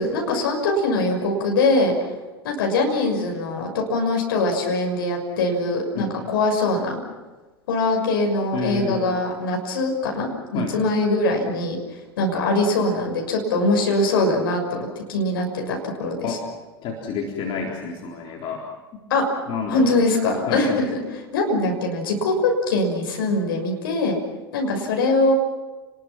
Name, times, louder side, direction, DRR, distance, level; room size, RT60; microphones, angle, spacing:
voice 1, 0.0-1.9 2.4-7.0 7.7-11.8 12.2-16.4 19.1-19.3 19.7-24.2 24.5-25.3, left 2 dB, 60° left, 2 dB, 6.4 m, -22 dB
voice 2, 6.0-6.3 8.5-9.1 10.5-10.8 16.2-16.4 16.8-18.6 18.9-19.0 19.5-20.0 20.5-20.7, left 5 dB, 40° left, -1 dB, 4.0 m, -29 dB
30.0 x 21.0 x 6.1 m, 1.2 s
figure-of-eight pair, 85°, 13 cm